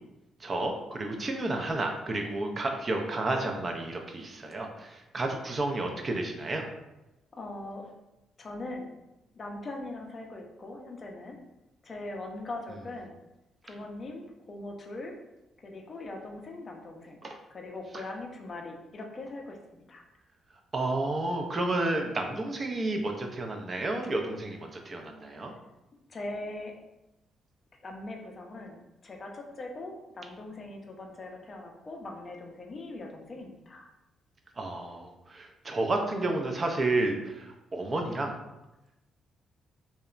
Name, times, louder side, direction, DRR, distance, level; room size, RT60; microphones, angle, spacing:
voice 1, 0.4-6.6 17.2-17.4 20.7-25.5 34.6-38.3, right 2 dB, 35° right, 3 dB, 0.4 m, -31 dB
voice 2, 7.3-7.9 8.4-8.9 9.3-11.4 11.8-13.1 13.6-15.2 15.6-17.2 17.5-20.0 26.1-26.7 27.8-33.9, left 2 dB, 40° left, 2 dB, 0.5 m, -41 dB
2.8 x 2.1 x 2.4 m, 0.96 s
cardioid pair, 90°, 0 cm